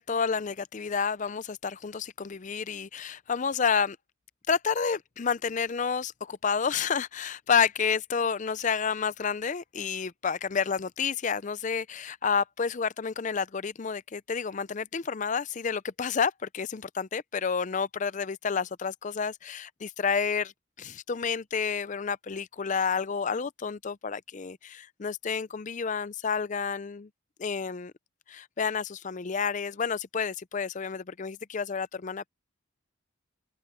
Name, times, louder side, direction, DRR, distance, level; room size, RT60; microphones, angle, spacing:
voice 1, 0.0-4.0 4.5-20.5 20.8-27.1 27.4-27.9 28.3-32.3, left 6 dB, 35° left, 0.5 m, -30 dB
open air
head